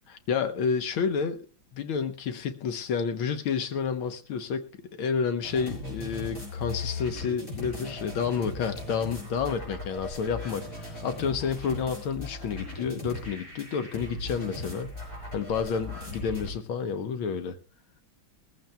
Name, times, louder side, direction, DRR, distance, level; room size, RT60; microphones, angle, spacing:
voice 1, 0.1-1.5 1.7-4.7 5.0-15.0 15.3-17.6, left 6 dB, 80° left, 1.8 m, -30 dB
sound 1, 5.4-16.5, left 2 dB, 40° left, 6.5 m, -38 dB
21.5 x 15.0 x 2.2 m
omnidirectional pair, 2.2 m